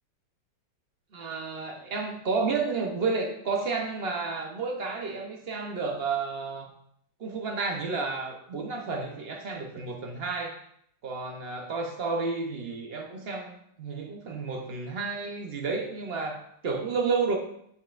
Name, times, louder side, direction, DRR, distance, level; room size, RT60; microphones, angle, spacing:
voice 1, 1.1-6.7 7.2-10.6 11.0-17.4, right 4 dB, 55° right, 2 dB, 0.6 m, -31 dB
9.0 x 5.6 x 2.5 m, 0.71 s
omnidirectional pair, 2.0 m